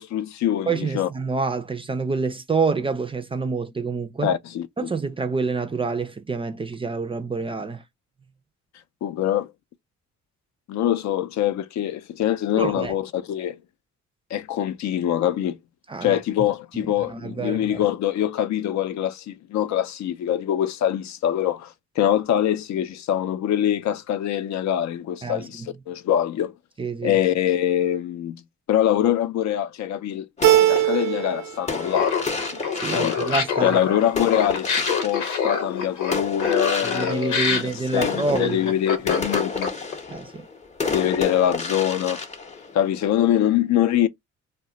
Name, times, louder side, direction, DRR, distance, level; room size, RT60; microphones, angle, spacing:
voice 1, 0.0-1.1 4.2-4.7 9.0-9.5 10.7-13.6 14.3-15.6 16.0-26.5 27.0-28.4 28.7-32.1 32.9-33.2 33.6-39.7 40.9-42.2 42.7-44.1, left 11 dB, 65° left, 0.5 m, -24 dB
voice 2, 0.7-4.4 4.8-7.8 12.6-12.9 15.9-16.2 16.7-17.8 25.2-25.7 26.8-27.2 32.7-33.8 36.8-38.7 40.1-40.5, right 4 dB, 20° right, 0.3 m, -27 dB
sound 1, 30.4-35.8 36.1-43.3, left 4 dB, 25° left, 0.6 m, -31 dB
Keyboard (musical), 30.4-31.5 31.8-32.6, right 14 dB, 85° right, 0.5 m, -21 dB
Laughter, 31.9-39.9, left 6 dB, 85° left, 0.9 m, -26 dB
2.2 x 2.1 x 3.6 m
cardioid pair, 90°, 30 cm